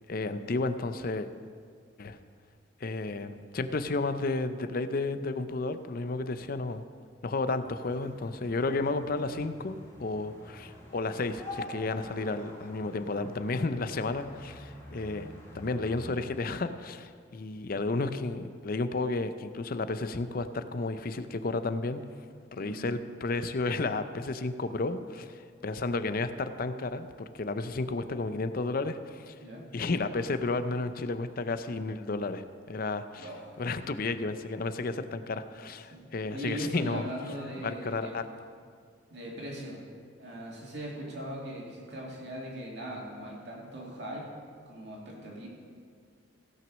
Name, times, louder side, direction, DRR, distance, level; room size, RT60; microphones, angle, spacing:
voice 1, 0.1-1.3 2.0-2.2 2.8-6.8 7.2-15.3 15.5-22.0 22.6-27.1 27.3-29.3 29.7-33.3 33.6-37.1 37.6-38.2, left 3 dB, 45° left, 10 dB, 0.5 m, -32 dB
sound 1, 7.6-16.1, left 1 dB, 15° left, 1.9 m, -47 dB
voice 2, 22.6-22.9 29.4-29.7 33.2-33.6 35.9-36.0 36.3-38.2 39.1-39.8 40.2-44.3 44.7-45.5, right 1 dB, 60° right, -2 dB, 2.5 m, -39 dB
16.5 x 6.1 x 6.2 m, 2.1 s
head